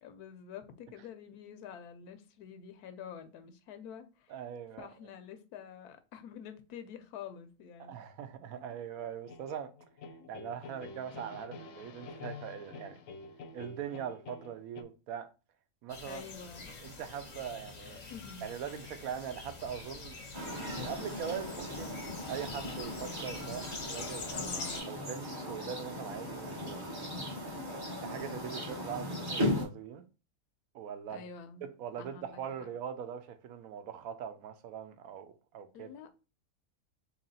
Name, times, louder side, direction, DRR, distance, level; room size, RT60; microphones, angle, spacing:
voice 1, 0.0-4.4 4.8-8.0 8.5-8.6 10.2-10.3 16.1-16.7 18.1-18.5 24.3-24.9 31.1-31.7 32.0-32.7 35.7-36.1, left 7 dB, 90° left, 1.1 m, -48 dB
voice 2, 4.3-4.9 7.8-9.7 10.3-13.0 13.5-15.3 15.8-16.2 16.8-18.1 18.4-20.2 20.8-24.5 24.9-26.8 27.6-30.0 30.7-31.2 31.6-35.9, right 8 dB, 75° right, 1.0 m, -42 dB
sound 1, 9.0-14.8, left 4 dB, 70° left, 0.9 m, -48 dB
sound 2, 15.9-24.8, left 3 dB, 40° left, 0.6 m, -45 dB
sound 3, 20.3-29.7, left 1 dB, 20° right, 0.7 m, -37 dB
3.0 x 2.9 x 3.9 m
omnidirectional pair, 1.6 m